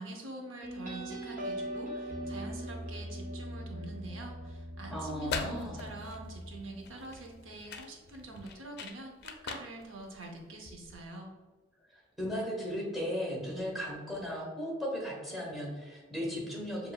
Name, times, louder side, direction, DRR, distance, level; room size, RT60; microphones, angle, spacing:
voice 1, 0.0-11.3, right 2 dB, 85° right, 1 dB, 0.7 m, -45 dB
sound 1, 0.6-7.8, equal, 45° right, 0.7 m, -41 dB
voice 2, 4.9-5.8 11.9-16.9, equal, ahead, -3 dB, 1.0 m, -36 dB
sound 2, 5.0-11.1, left 5 dB, 55° left, 0.4 m, -42 dB
6.6 x 2.6 x 2.3 m, 1.3 s
head